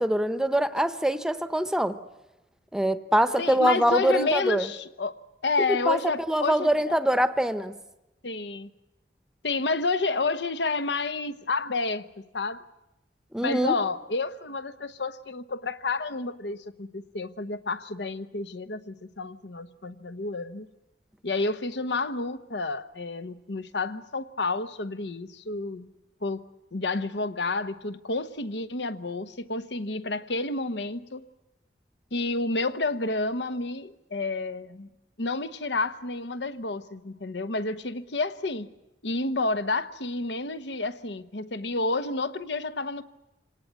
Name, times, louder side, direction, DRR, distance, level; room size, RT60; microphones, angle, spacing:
voice 1, 0.0-2.0 2.7-4.7 5.9-7.7 13.3-13.7, right 1 dB, 5° right, 0.8 m, -24 dB
voice 2, 3.4-7.0 8.2-8.7 9.4-12.6 13.4-20.7 21.2-25.9 26.2-26.4 26.7-31.3 32.1-34.9 35.2-38.7 39.0-43.0, left 3 dB, 80° left, 1.0 m, -30 dB
26.0 x 18.5 x 9.4 m
head